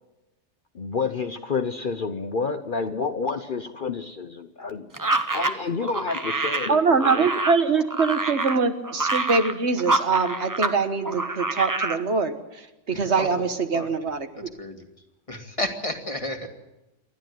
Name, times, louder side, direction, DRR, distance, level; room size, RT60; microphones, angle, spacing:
voice 1, 0.7-4.9 5.3-7.3, left 4 dB, 45° left, 8 dB, 1.0 m, -29 dB
sound 1, 4.9-10.8 11.0-12.0, right 2 dB, 20° right, 0.9 m, -27 dB
voice 2, 6.7-12.3 12.9-14.5, right 4 dB, 65° right, 8 dB, 1.6 m, -23 dB
voice 3, 12.9-13.5 13.7-13.9 14.4-14.9 15.3-16.5, left 1 dB, 25° left, 4 dB, 2.2 m, -32 dB
28.5 x 11.5 x 9.3 m, 1.0 s
omnidirectional pair, 1.2 m